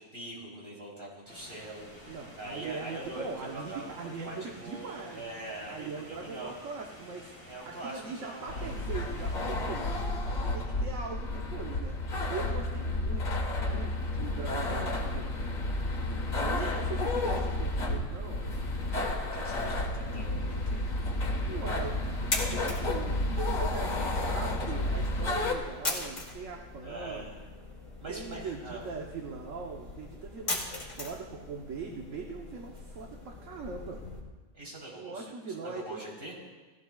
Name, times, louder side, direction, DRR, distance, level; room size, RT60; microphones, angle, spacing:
voice 1, 0.0-6.5 7.5-8.7 16.4-16.8 18.9-19.0 19.3-20.8 26.8-27.4 28.0-28.8 34.5-36.3, right 2 dB, 40° right, -4 dB, 3.9 m, -43 dB
sound 1, 1.3-9.6, left 1 dB, 10° left, 3.7 m, -51 dB
voice 2, 2.1-5.2 5.7-7.3 7.6-9.9 10.5-12.0 12.3-13.3 13.6-15.5 16.5-18.5 21.5-27.3 28.1-34.0 34.9-36.2, right 5 dB, 70° right, 0 dB, 1.4 m, -41 dB
sound 2, 8.5-25.5, left 2 dB, 75° left, 1.9 m, -31 dB
sound 3, 21.1-34.2, left 2 dB, 60° left, 2.7 m, -40 dB
18.0 x 16.0 x 2.4 m, 1.3 s
omnidirectional pair, 1.4 m